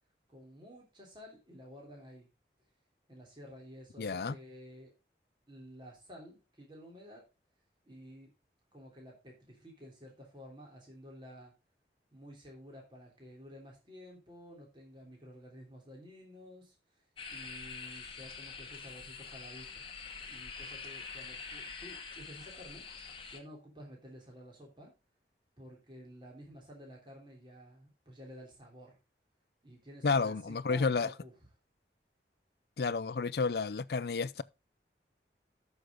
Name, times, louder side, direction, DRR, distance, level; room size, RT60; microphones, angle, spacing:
voice 1, 0.3-2.3 3.1-4.9 5.5-7.2 7.9-8.3 8.7-11.5 12.1-19.8 20.3-22.9 23.3-24.9 25.6-29.0 29.6-31.3, equal, 25° right, 3.6 m, -52 dB
voice 2, 4.0-4.4 30.0-31.1 32.8-34.4, left 4 dB, 65° left, 0.5 m, -31 dB
sound 1, 17.2-23.4, left 5 dB, 30° left, 1.2 m, -45 dB
13.0 x 6.5 x 3.8 m
head